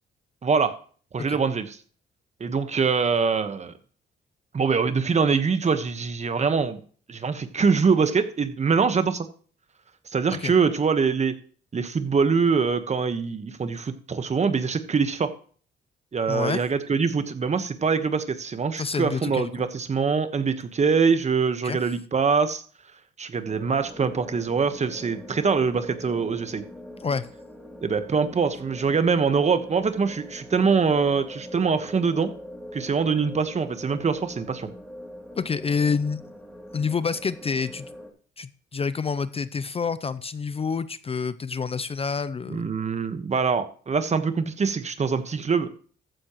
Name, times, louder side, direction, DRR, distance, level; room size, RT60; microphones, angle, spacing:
voice 1, 0.4-0.7 1.1-1.8 2.4-3.7 4.5-6.8 7.1-9.3 10.1-11.3 11.7-15.3 16.1-22.6 23.2-26.6 27.8-32.3 32.7-34.7 42.5-45.7, right 5 dB, 35° right, 10 dB, 1.2 m, -24 dB
voice 2, 16.3-16.6 18.8-19.5 21.6-21.8 27.0-27.3 35.4-36.2 36.7-37.9 38.4-42.7, left 5 dB, 30° left, 15 dB, 0.5 m, -28 dB
sound 1, 23.5-38.1, left 1 dB, 5° left, 2.8 m, -42 dB
14.0 x 9.8 x 3.1 m, 0.43 s
cardioid pair, 90°, 20 cm